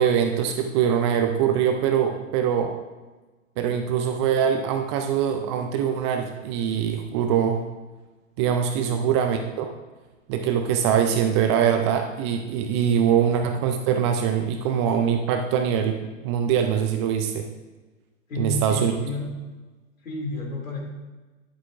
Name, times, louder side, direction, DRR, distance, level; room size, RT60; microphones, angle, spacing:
voice 1, 0.0-2.8 3.6-7.6 8.4-9.7 10.3-17.4 18.4-18.9, right 8 dB, 25° right, 5 dB, 0.4 m, -23 dB
voice 2, 8.7-9.1 13.1-13.3 18.3-19.3 20.0-20.8, left 2 dB, 80° left, -1 dB, 2.6 m, -31 dB
10.0 x 8.1 x 2.5 m, 1.2 s
hypercardioid pair, 115°, 40 cm